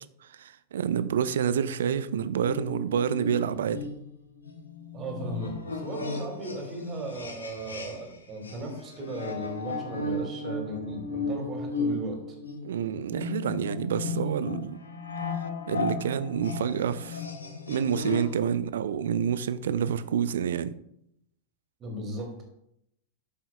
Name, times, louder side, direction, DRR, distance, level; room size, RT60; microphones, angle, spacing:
voice 1, 0.3-3.8 12.6-14.8 15.7-17.2 17.7-20.7, right 8 dB, 60° right, 14 dB, 0.4 m, -28 dB
sound 1, 2.4-8.2 8.4-18.4, left 3 dB, 75° left, 1.0 m, -35 dB
voice 2, 4.9-12.2 21.8-22.4, right 1 dB, 30° right, 1 dB, 2.2 m, -36 dB
11.5 x 5.5 x 2.3 m, 0.75 s
figure-of-eight pair, 90°, 0 cm